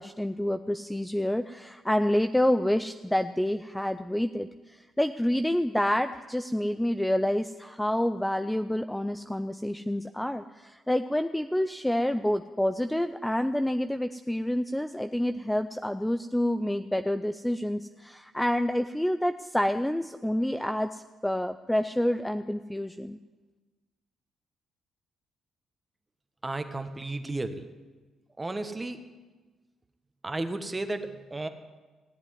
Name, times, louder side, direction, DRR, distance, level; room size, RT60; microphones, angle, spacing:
voice 1, 0.0-23.2, left 1 dB, 5° left, 10 dB, 0.5 m, -28 dB
voice 2, 26.4-27.7 28.4-29.1 30.2-31.5, right 2 dB, 20° right, 8 dB, 1.4 m, -33 dB
16.5 x 8.1 x 9.5 m, 1.3 s
cardioid pair, 90°, 0 cm